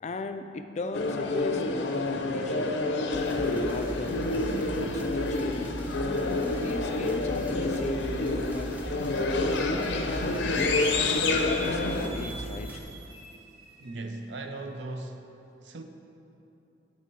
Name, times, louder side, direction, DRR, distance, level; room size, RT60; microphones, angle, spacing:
voice 1, 0.0-2.8 3.3-5.7 6.6-8.0 8.5-8.8 9.5-10.9 11.2-12.8, left 3 dB, 40° left, 9 dB, 0.3 m, -38 dB
sound 1, 0.9-12.1, left 2 dB, 80° left, 0.6 m, -28 dB
sound 2, 3.1-12.8, equal, 10° right, 0.6 m, -39 dB
sound 3, 9.3-14.9, right 1 dB, 55° right, 0.9 m, -46 dB
voice 2, 13.8-15.8, right 2 dB, 80° right, 5 dB, 0.6 m, -38 dB
10.0 x 4.4 x 4.6 m, 2.9 s
head